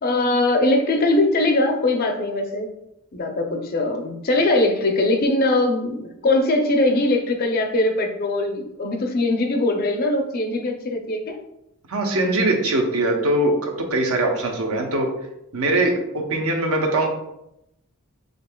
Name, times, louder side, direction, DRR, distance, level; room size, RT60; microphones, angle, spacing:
voice 1, 0.0-2.7 3.1-11.4, left 2 dB, 40° left, 4 dB, 0.5 m, -21 dB
voice 2, 11.9-15.1 15.5-17.1, right 2 dB, 80° right, 2 dB, 0.8 m, -21 dB
5.1 x 3.6 x 2.2 m, 0.83 s
head